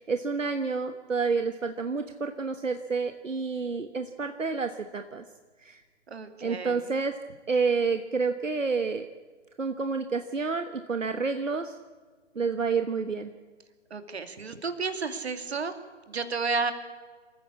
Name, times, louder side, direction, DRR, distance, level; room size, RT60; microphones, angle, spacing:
voice 1, 0.0-5.2 5.6-5.8 6.4-7.1 7.5-9.1 9.6-11.8 12.3-13.3, right 4 dB, 80° right, 8 dB, 1.4 m, -29 dB
voice 2, 6.1-6.8 13.9-15.7 16.1-16.7, right 4 dB, 55° right, 8 dB, 2.6 m, -31 dB
27.0 x 14.5 x 8.5 m, 1.5 s
figure-of-eight pair, 140°, 38 cm